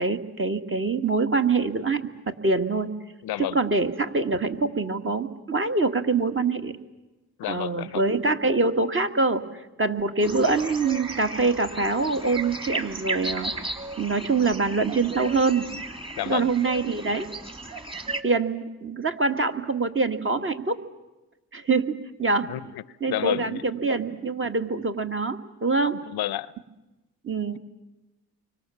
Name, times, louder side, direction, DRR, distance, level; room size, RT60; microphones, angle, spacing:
voice 1, 0.0-2.0 2.3-2.9 3.5-6.8 7.5-13.5 14.0-15.7 16.3-17.3 18.2-20.8 21.5-21.9 22.2-22.5 23.0-26.0 27.2-27.6, right 3 dB, 30° right, 6 dB, 2.2 m, -24 dB
voice 2, 3.2-3.6 7.4-8.1 16.2-16.5 22.5-22.8 23.1-23.6 26.1-26.5, left 13 dB, 75° left, 18 dB, 0.9 m, -30 dB
sound 1, 10.2-18.2, right 2 dB, 15° right, 2.3 m, -35 dB
30.0 x 24.5 x 7.2 m, 1.1 s
supercardioid pair, 70°, 38 cm